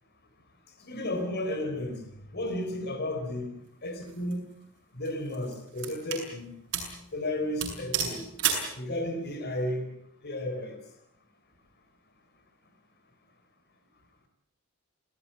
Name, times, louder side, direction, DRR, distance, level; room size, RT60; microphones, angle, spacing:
voice 1, 0.8-2.0 2.3-3.5 3.8-4.4 5.0-6.5 7.1-8.2 8.8-9.9 10.2-10.8, left 1 dB, 50° left, 7 dB, 4.0 m, -33 dB
sound 1, 4.0-4.3 5.1-6.3 6.7-7.0 7.3-7.4 7.6-8.7, right 7 dB, 60° right, 7.8 m, -31 dB
28.5 x 17.5 x 8.7 m, 0.75 s
head